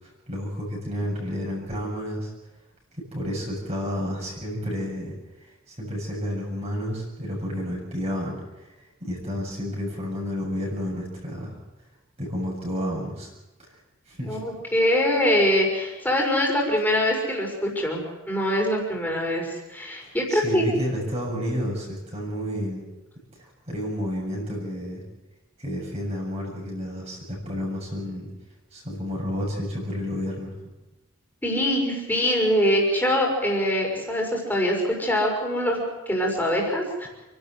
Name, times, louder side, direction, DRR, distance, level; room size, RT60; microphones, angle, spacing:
voice 1, 0.3-2.3 3.1-5.1 5.7-8.4 9.0-11.5 12.2-13.3 14.1-14.4 20.3-22.8 23.7-25.0 25.6-28.3 28.7-30.5, equal, 30° right, -3 dB, 7.4 m, -30 dB
voice 2, 14.3-20.6 31.4-37.1, equal, 10° left, -1 dB, 6.1 m, -24 dB
29.5 x 12.5 x 8.1 m, 1.1 s
head